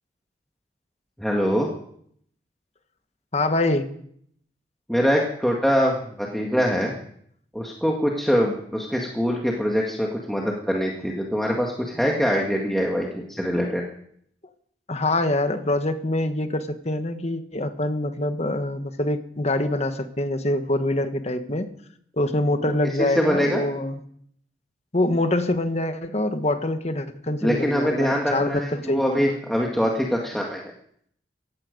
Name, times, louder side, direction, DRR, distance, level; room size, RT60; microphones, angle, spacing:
voice 1, 1.2-1.7 4.9-6.9 7.5-13.8 23.0-23.6 27.4-30.6, equal, ahead, -1 dB, 1.8 m, -23 dB
voice 2, 3.3-3.9 14.9-21.7 22.2-24.0 24.9-29.3, left 1 dB, 40° left, 9 dB, 1.4 m, -25 dB
17.5 x 15.0 x 5.3 m, 0.67 s
head